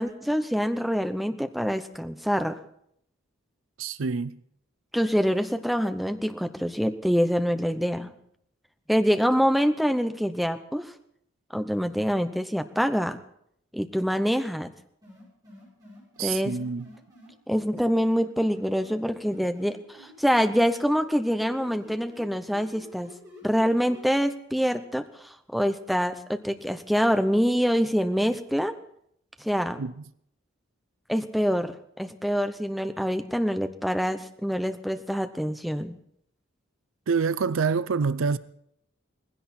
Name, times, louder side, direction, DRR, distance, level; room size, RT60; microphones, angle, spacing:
voice 1, 0.0-2.6 4.9-8.1 8.9-10.9 11.5-13.2 13.7-14.7 16.2-16.6 17.5-23.1 23.4-28.7 29.4-29.8 31.1-36.0, equal, ahead, 0.7 m, -25 dB
voice 2, 3.8-4.4 16.2-16.9 29.8-29.9 37.1-38.4, right 5 dB, 80° right, 0.5 m, -26 dB
sound 1, 15.0-17.3 18.1-20.1 20.4-24.0, left 1 dB, 20° right, 7.6 m, -49 dB
19.0 x 16.0 x 4.3 m
head